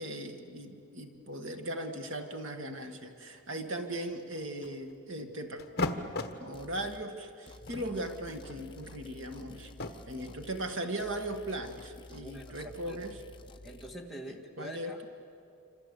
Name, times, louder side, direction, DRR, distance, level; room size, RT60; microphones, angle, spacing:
voice 1, 0.0-5.6 6.4-9.7 10.1-13.2 14.3-15.1, right 1 dB, 60° right, 5 dB, 1.7 m, -38 dB
sound 1, 4.1-4.9 5.6-6.4 7.2-7.3 7.6-9.9, left 2 dB, 45° left, 1.3 m, -37 dB
sound 2, 6.5-7.1 7.5-10.7 11.0-13.9, left 2 dB, 20° left, 0.6 m, -51 dB
voice 2, 12.2-13.0 13.6-15.1, right 1 dB, ahead, 2 dB, 2.0 m, -45 dB
27.0 x 26.5 x 8.2 m, 2.6 s
head